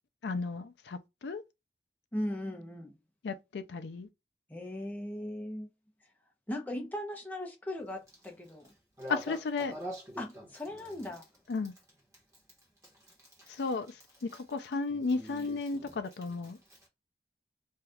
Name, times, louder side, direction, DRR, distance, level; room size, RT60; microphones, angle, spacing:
voice 1, 0.2-1.4 3.2-4.1 9.3-9.7 11.5-11.7 13.5-16.6, left 3 dB, 80° left, 0.4 m, -34 dB
voice 2, 2.1-3.0 4.5-5.7 6.5-8.7 10.2-11.2, left 1 dB, 10° left, 0.7 m, -38 dB
voice 3, 9.0-10.5 10.7-11.1 13.2-13.8 14.3-14.4 14.9-16.0 16.3-16.9, equal, 20° right, 1.1 m, -45 dB
2.7 x 2.4 x 3.3 m
head